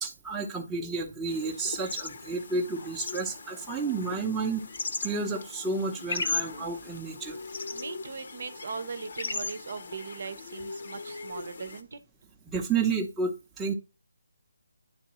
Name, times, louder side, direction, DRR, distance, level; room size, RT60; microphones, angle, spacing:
voice 1, 0.0-4.7 5.0-7.4 12.5-13.7, right 4 dB, 5° right, 0.8 m, -31 dB
sound 1, 1.3-11.8, left 4 dB, 55° left, 0.9 m, -38 dB
voice 2, 7.7-12.0, right 5 dB, 55° right, 0.8 m, -39 dB
10.5 x 3.7 x 3.0 m
hypercardioid pair, 170°, 0 cm